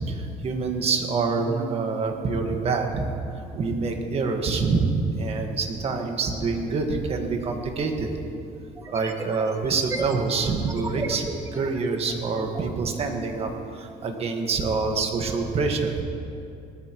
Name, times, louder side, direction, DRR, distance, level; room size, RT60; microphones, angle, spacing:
voice 1, 0.1-3.1 3.5-4.9 5.2-8.1 8.9-11.3 11.5-13.5 13.8-16.0, right 4 dB, 40° right, 4 dB, 1.5 m, -26 dB
sound 1, 8.7-12.7, right 2 dB, 20° right, 0.9 m, -35 dB
19.0 x 13.5 x 3.0 m, 2.6 s
cardioid pair, 125°, 15 cm